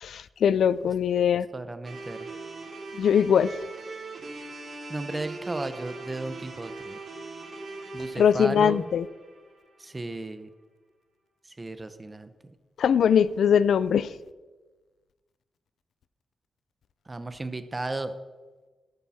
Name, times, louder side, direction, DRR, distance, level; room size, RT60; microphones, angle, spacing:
voice 1, 0.0-1.5 3.0-3.5 8.2-9.1 12.8-14.1, left 8 dB, 80° left, 0.5 m, -21 dB
voice 2, 1.5-2.3 4.9-7.0 7.9-8.9 9.8-10.5 11.6-12.3 17.1-18.1, right 2 dB, 20° right, 0.8 m, -34 dB
sound 1, 1.8-10.0, right 3 dB, 55° right, 4.2 m, -40 dB
13.5 x 12.0 x 4.3 m
wide cardioid pair, 135°, 0 cm